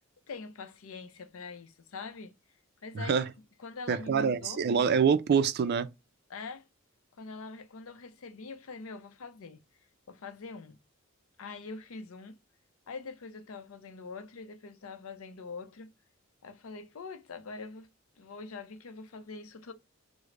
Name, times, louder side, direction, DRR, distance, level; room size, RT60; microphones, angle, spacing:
voice 1, 0.3-2.3 2.8-3.2 3.6-4.6 6.3-6.7 7.1-9.6 10.1-10.8 11.4-12.4 12.9-15.9 16.4-17.9 18.2-19.7, left 4 dB, 80° left, 0.5 m, -44 dB
voice 2, 3.0-3.3 3.9-5.9, right 6 dB, 50° right, 0.3 m, -26 dB
3.2 x 2.0 x 3.7 m
head